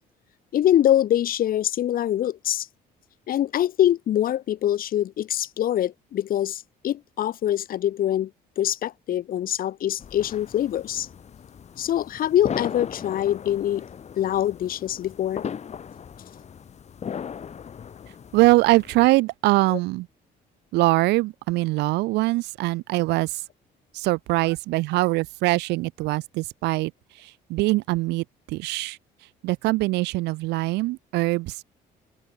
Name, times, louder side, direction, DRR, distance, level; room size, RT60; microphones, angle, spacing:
voice 1, 0.5-2.7 3.3-8.3 8.6-11.1 11.8-13.9 14.2-15.4, left 11 dB, 60° left, 1.6 m, -24 dB
sound 1, 10.0-19.1, left 7 dB, 40° left, 3.3 m, -37 dB
voice 2, 18.3-20.1 20.7-23.4 23.9-29.0 29.4-31.6, right 20 dB, 90° right, 1.5 m, -23 dB
cardioid pair, 110°, 17 cm